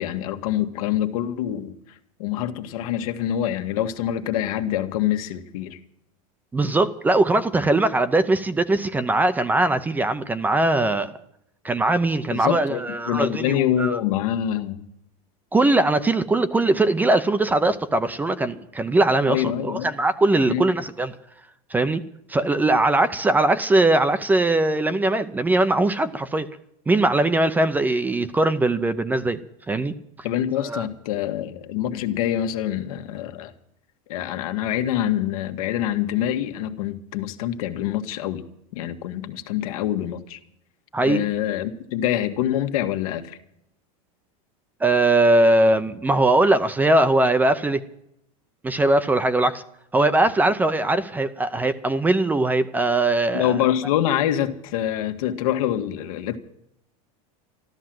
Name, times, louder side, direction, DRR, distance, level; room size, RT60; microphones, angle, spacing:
voice 1, 0.0-1.8 2.2-5.8 12.3-14.9 19.3-19.9 20.5-20.6 30.2-33.5 34.1-38.4 38.7-40.4 41.0-43.4 53.3-56.4, left 11 dB, 70° left, 1.6 m, -25 dB
voice 2, 6.5-11.2 11.6-14.0 15.5-21.1 21.7-22.0 22.3-26.5 26.9-29.4 29.7-29.9 30.6-30.9 40.9-41.3 44.8-47.8 48.6-49.6 49.9-53.6, right 2 dB, 10° right, 0.6 m, -20 dB
13.0 x 13.0 x 7.7 m
supercardioid pair, 155°, 19 cm